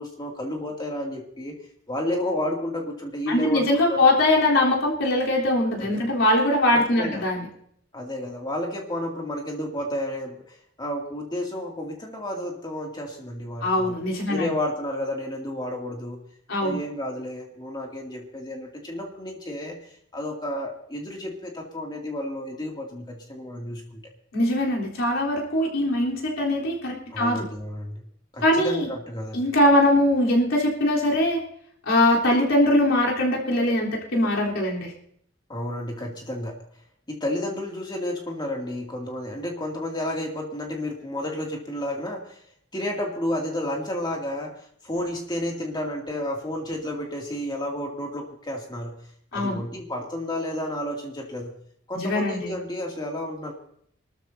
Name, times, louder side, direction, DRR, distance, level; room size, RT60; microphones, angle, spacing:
voice 1, 0.0-1.6 1.9-4.1 5.8-6.1 6.7-7.2 7.9-13.9 14.3-16.2 16.6-24.0 27.1-28.1 28.3-29.4 35.5-36.6 37.1-42.4 42.7-49.0 49.3-51.5 51.9-53.5, left 1 dB, 20° left, 0 dB, 2.4 m, -31 dB
voice 2, 3.3-7.5 13.6-14.5 16.5-16.8 24.3-27.5 28.4-28.9 29.3-31.4 31.9-34.9 49.3-49.6 51.9-52.6, left 1 dB, 85° left, -4 dB, 3.6 m, -22 dB
26.0 x 13.5 x 2.7 m, 0.67 s
head